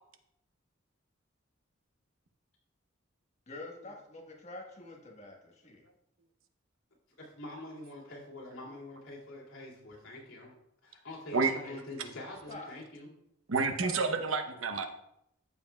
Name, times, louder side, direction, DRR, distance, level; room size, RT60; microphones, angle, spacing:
voice 1, 3.5-5.8 11.4-11.8 12.5-12.7 13.8-14.2, left 2 dB, 35° left, 0 dB, 1.4 m, -46 dB
voice 2, 7.2-10.5 10.8-13.2, left 1 dB, 85° left, -3 dB, 2.5 m, -45 dB
voice 3, 13.5-14.9, right 4 dB, 85° right, 6 dB, 0.8 m, -29 dB
13.5 x 5.2 x 2.3 m, 0.77 s
head